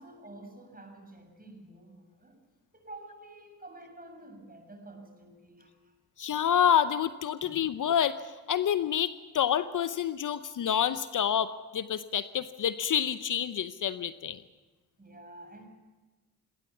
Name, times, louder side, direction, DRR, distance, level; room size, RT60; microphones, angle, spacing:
voice 1, 0.0-2.4 2.7-5.9 7.4-7.6 15.0-15.7, right 2 dB, 20° right, 4 dB, 6.7 m, -49 dB
voice 2, 6.2-14.4, left 9 dB, 50° left, 14 dB, 0.8 m, -28 dB
20.5 x 17.5 x 7.3 m, 1.2 s
hypercardioid pair, 50°, 39 cm